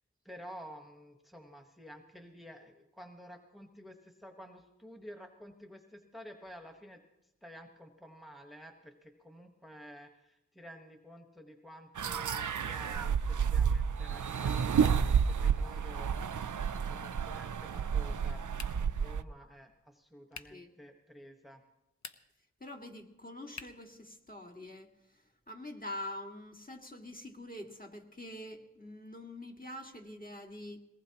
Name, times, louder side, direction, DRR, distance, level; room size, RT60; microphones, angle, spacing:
voice 1, 0.2-7.0 7.4-16.2 16.9-18.4 18.8-21.6, equal, ahead, 4 dB, 1.3 m, -51 dB
sound 1, 12.0-19.2, right 7 dB, 90° right, 0.5 m, -30 dB
sound 2, 18.5-19.0 20.3-20.7 21.9-22.5 23.5-23.9, left 4 dB, 70° left, 0.8 m, -48 dB
voice 2, 22.6-24.9 25.5-30.8, left 1 dB, 30° left, 2 dB, 1.9 m, -45 dB
22.0 x 19.0 x 2.9 m, 0.91 s
wide cardioid pair, 55°, 29 cm